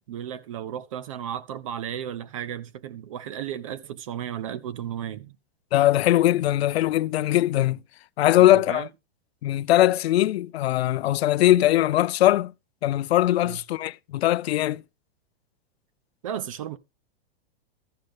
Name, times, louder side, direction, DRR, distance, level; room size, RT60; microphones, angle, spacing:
voice 1, 0.0-5.4 8.4-8.9 13.4-13.6 16.2-16.8, right 9 dB, 35° right, 0.5 m, -34 dB
voice 2, 5.7-7.8 8.2-8.9 9.4-12.5 12.8-14.8, left 14 dB, 85° left, 0.5 m, -21 dB
13.0 x 6.4 x 3.5 m
supercardioid pair, 175°, 31 cm